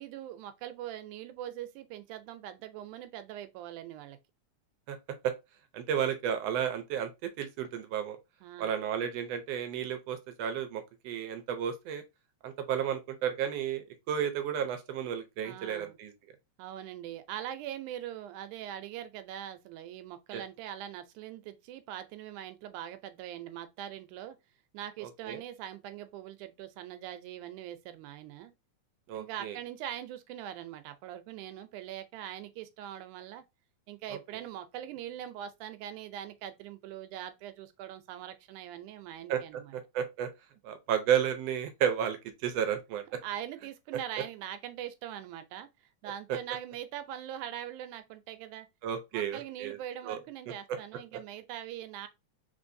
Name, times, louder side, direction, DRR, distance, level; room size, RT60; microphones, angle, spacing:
voice 1, 0.0-4.2 8.4-8.8 15.4-16.0 16.6-24.4 24.7-28.5 29.1-33.4 33.9-39.8 43.2-45.7 46.0-48.7 49.1-52.1, right 11 dB, 90° right, 2.1 m, -42 dB
voice 2, 5.7-8.2 8.6-12.0 12.4-16.1 20.3-20.4 25.0-25.4 29.1-29.6 39.3-39.4 39.7-40.3 40.6-43.0 46.3-46.4 48.8-49.8 50.0-50.2 51.1-51.2, right 9 dB, 75° right, 1.6 m, -32 dB
4.5 x 3.7 x 2.6 m
omnidirectional pair, 3.4 m